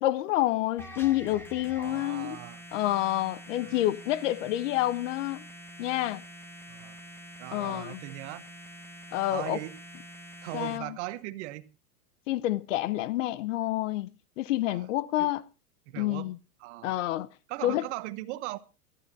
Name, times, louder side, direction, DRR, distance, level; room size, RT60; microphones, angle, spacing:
voice 1, 0.0-2.4 2.7-5.4 5.8-6.2 7.5-8.0 9.1-9.6 10.5-11.0 12.3-15.4 16.0-16.4 16.8-17.3 17.6-17.9, left 15 dB, 50° left, 0.8 m, -28 dB
sound 1, 0.8-10.8, right 1 dB, 5° left, 1.2 m, -46 dB
voice 2, 1.8-2.6 3.6-3.9 6.7-7.0 7.4-8.5 9.3-9.7 10.4-11.7 14.7-14.8 15.2-15.3 15.9-16.3 16.6-17.0 17.5-18.6, right 17 dB, 45° right, 1.1 m, -39 dB
24.5 x 12.0 x 2.7 m
supercardioid pair, 145°, 46 cm